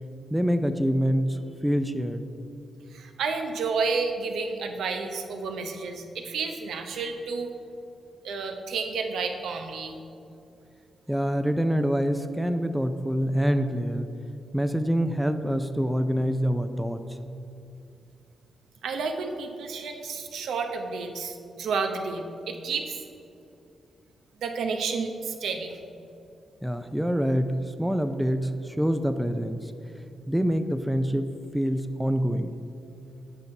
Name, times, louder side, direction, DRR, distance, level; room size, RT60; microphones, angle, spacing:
voice 1, 0.3-2.3 11.1-14.1 14.5-17.0 26.6-29.7 30.3-32.5, equal, 5° right, 8 dB, 0.4 m, -26 dB
voice 2, 2.9-7.5 8.2-10.0 18.8-23.0 24.4-25.8, right 4 dB, 85° right, 4 dB, 0.8 m, -31 dB
8.1 x 5.8 x 5.3 m, 2.7 s
cardioid pair, 85°, 0 cm